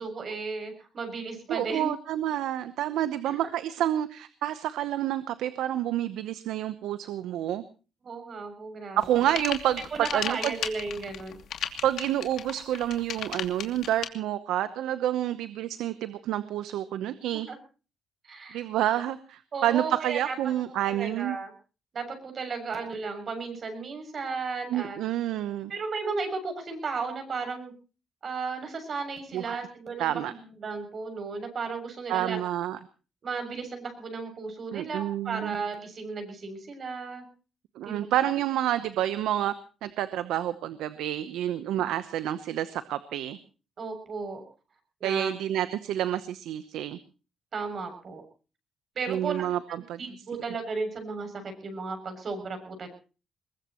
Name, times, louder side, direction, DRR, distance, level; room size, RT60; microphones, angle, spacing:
voice 1, 0.0-1.9 3.3-3.5 8.0-9.0 9.9-11.4 17.5-17.6 18.2-18.6 19.5-20.5 20.8-21.5 21.9-25.0 25.7-27.7 28.2-30.1 30.6-32.4 33.2-37.2 37.8-38.1 43.8-44.4 45.0-45.3 47.5-48.2 49.0-49.5 50.0-51.3 51.6-52.9, right 4 dB, 50° right, 6 dB, 7.1 m, -34 dB
voice 2, 1.5-7.6 9.0-9.8 10.1-10.5 11.8-17.5 18.5-21.4 24.7-25.7 29.3-29.6 30.0-30.3 32.1-32.8 34.7-35.6 37.8-39.5 39.8-43.4 45.0-47.0 49.1-50.0, right 12 dB, 85° right, 13 dB, 0.9 m, -29 dB
sound 1, 9.0-14.1, left 9 dB, 70° left, 2.8 m, -34 dB
22.0 x 20.5 x 3.1 m, 0.36 s
cardioid pair, 90°, 0 cm